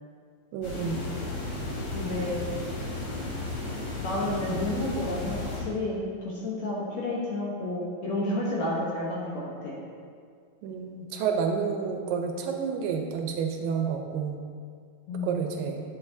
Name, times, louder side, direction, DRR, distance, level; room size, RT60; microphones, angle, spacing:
voice 1, 0.5-1.0 10.6-14.4 15.2-15.8, right 6 dB, 80° right, 3 dB, 2.3 m, -30 dB
sound 1, 0.6-5.6, left 2 dB, 90° left, 3.8 m, -34 dB
voice 2, 1.9-2.4 4.0-9.8 15.1-15.4, left 1 dB, 65° left, -5 dB, 1.9 m, -31 dB
9.6 x 7.7 x 2.7 m, 2.1 s
omnidirectional pair, 4.1 m